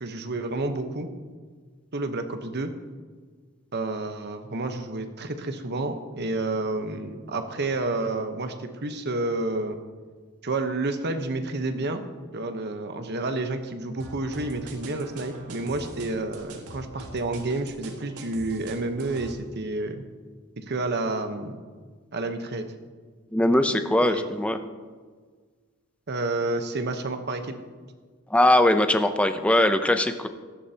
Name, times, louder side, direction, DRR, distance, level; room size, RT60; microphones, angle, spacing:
voice 1, 0.0-1.1 1.9-2.7 3.7-9.8 10.4-12.0 12.3-20.0 20.6-21.6 22.1-22.7 24.1-24.3 26.1-27.5, right 2 dB, 50° right, 7 dB, 1.0 m, -30 dB
sound 1, 14.0-19.3, right 2 dB, 85° right, 1.6 m, -43 dB
voice 2, 23.3-24.6 28.3-30.3, left 1 dB, 5° left, 8 dB, 0.5 m, -21 dB
16.5 x 12.0 x 2.9 m, 1.5 s
head